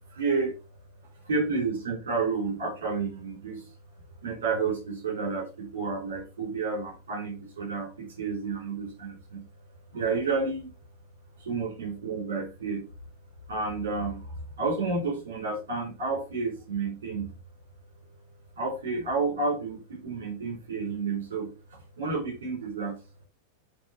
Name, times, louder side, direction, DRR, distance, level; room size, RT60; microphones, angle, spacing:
voice 1, 0.1-0.6 1.2-3.6 4.2-9.4 9.9-10.7 11.4-12.8 13.5-17.3 18.6-23.0, right 4 dB, 60° right, 1 dB, 4.5 m, -30 dB
11.0 x 4.0 x 4.5 m, 0.29 s
figure-of-eight pair, 90°, 0 cm